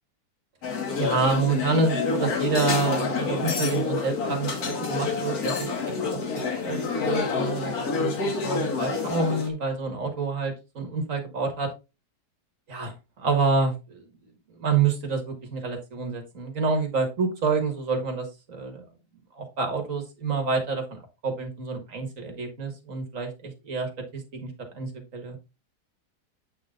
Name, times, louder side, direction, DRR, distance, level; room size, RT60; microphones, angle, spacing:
sound 1, 0.6-9.5, left 5 dB, 60° left, 1.7 m, -28 dB
voice 1, 1.0-5.7 6.1-6.2 6.6-11.7 12.7-14.0 14.6-18.8 19.4-25.4, right 4 dB, 50° right, 5 dB, 1.8 m, -28 dB
8.3 x 3.9 x 3.7 m, 0.27 s
omnidirectional pair, 1.8 m